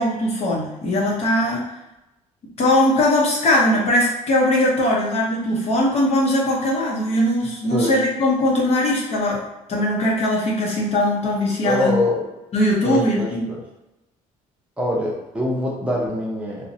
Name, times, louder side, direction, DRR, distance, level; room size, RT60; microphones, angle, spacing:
voice 1, 0.0-1.7 2.6-12.0 12.5-13.5, left 1 dB, 45° left, -2 dB, 0.7 m, -20 dB
voice 2, 7.7-8.0 11.6-12.2 12.8-13.6 14.8-16.7, left 1 dB, 10° right, -4 dB, 0.7 m, -24 dB
2.5 x 2.1 x 2.6 m, 0.92 s
cardioid pair, 120°, 15 cm